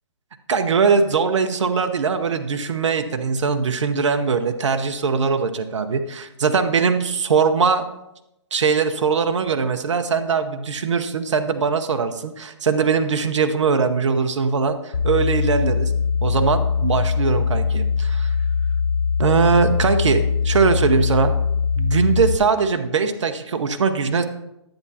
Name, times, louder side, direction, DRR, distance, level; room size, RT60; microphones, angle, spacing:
voice 1, 0.5-7.8 8.5-15.9 16.2-18.3 19.2-21.3 21.7-24.2, right 5 dB, 85° right, 7 dB, 0.8 m, -21 dB
sound 1, 14.9-22.4, left 6 dB, 85° left, 0.7 m, -21 dB
10.5 x 8.7 x 2.8 m, 0.88 s
hypercardioid pair, 160°, 15 cm